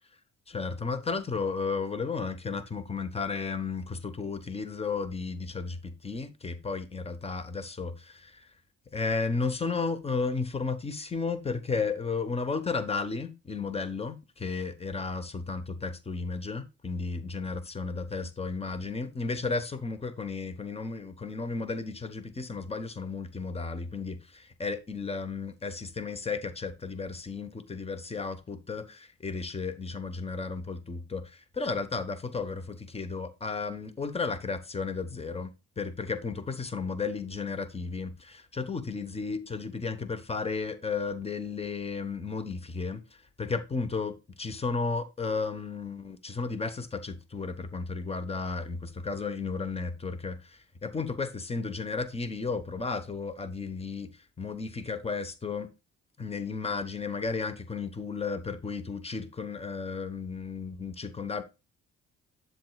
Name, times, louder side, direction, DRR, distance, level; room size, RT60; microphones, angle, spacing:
voice 1, 0.5-8.5 8.9-35.5 35.8-54.1 54.4-55.7 56.2-61.4, left 4 dB, 20° left, 1.1 m, -33 dB
7.9 x 7.6 x 2.3 m
cardioid pair, 90°, 30 cm